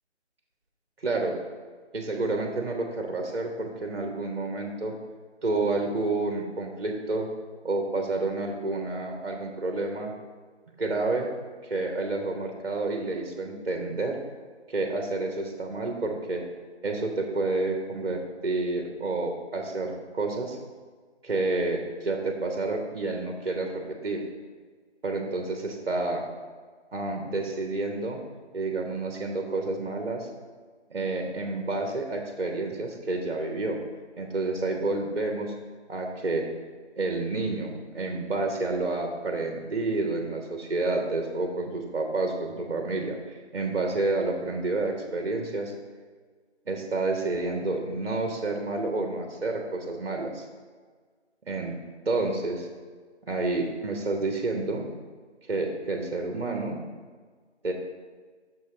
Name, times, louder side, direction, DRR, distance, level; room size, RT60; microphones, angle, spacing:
voice 1, 1.0-1.4 1.9-5.0 5.4-7.3 7.6-10.1 10.8-11.3 11.6-14.2 14.7-16.4 16.8-20.6 21.2-24.2 25.0-26.2 26.9-28.2 28.5-30.3 30.9-33.8 34.2-35.5 35.9-36.5 37.0-45.7 46.7-50.5 51.4-51.8 52.1-52.7 53.2-54.9 55.4-56.8 57.6-57.7, right 2 dB, 55° right, 3 dB, 0.8 m, -29 dB
6.2 x 4.2 x 4.9 m, 1.5 s
figure-of-eight pair, 165°, 35 cm